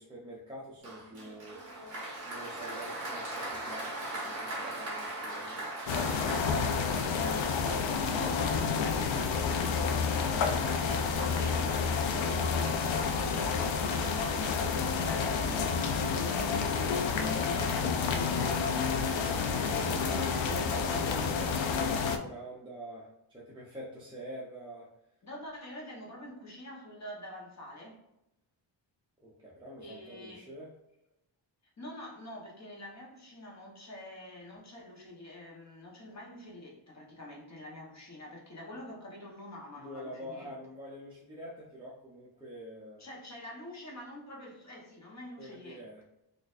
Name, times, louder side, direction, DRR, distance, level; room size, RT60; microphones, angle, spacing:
voice 1, 0.0-7.3 19.5-24.9 29.2-30.7 39.7-43.0 45.4-46.0, equal, 10° right, -7 dB, 0.5 m, -46 dB
Applause, 0.8-7.9, right 1 dB, 35° right, 1.3 m, -39 dB
sound 1, 5.9-22.2, left 5 dB, 75° left, 0.5 m, -29 dB
voice 2, 7.8-10.3 10.6-20.6 25.2-28.0 29.8-30.5 31.8-40.5 43.0-46.0, left 1 dB, 35° left, -2 dB, 1.0 m, -46 dB
4.2 x 2.5 x 2.4 m, 0.86 s
wide cardioid pair, 180°, 47 cm